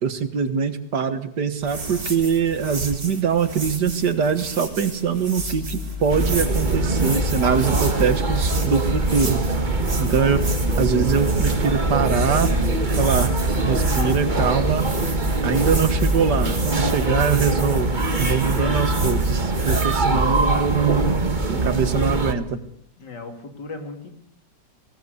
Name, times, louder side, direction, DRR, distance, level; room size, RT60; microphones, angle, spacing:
voice 1, 0.0-9.4 10.0-10.4 10.8-12.5 13.0-13.4 13.6-14.9 15.4-21.2 21.5-22.6, right 6 dB, 70° right, 10 dB, 2.2 m, -23 dB
sound 1, 1.6-20.0, right 2 dB, 55° right, 4.4 m, -32 dB
sound 2, 5.4-19.3, left 6 dB, 35° left, 3.4 m, -33 dB
sound 3, 6.1-22.3, right 2 dB, 30° right, 1.5 m, -23 dB
voice 2, 10.0-10.4 18.5-18.9 23.0-24.1, left 3 dB, 75° left, 5 dB, 3.4 m, -37 dB
20.0 x 18.5 x 8.1 m, 0.69 s
omnidirectional pair, 1.9 m